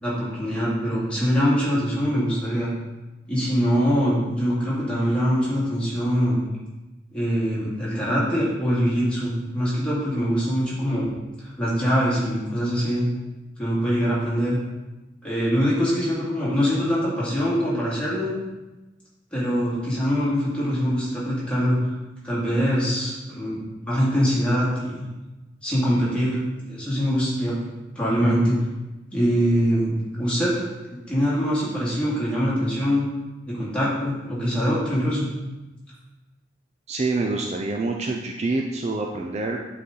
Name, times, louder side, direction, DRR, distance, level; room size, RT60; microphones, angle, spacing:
voice 1, 0.0-2.7 3.3-6.4 7.1-11.1 11.4-13.0 13.6-14.6 15.2-18.3 19.3-21.8 22.2-25.0 25.6-26.4 26.7-27.5 28.0-28.6 29.1-30.6 31.1-33.1 33.5-35.3, equal, 5° left, -9 dB, 2.4 m, -23 dB
voice 2, 36.9-39.6, right 3 dB, 35° right, 2 dB, 0.4 m, -26 dB
8.2 x 4.0 x 3.9 m, 1.1 s
head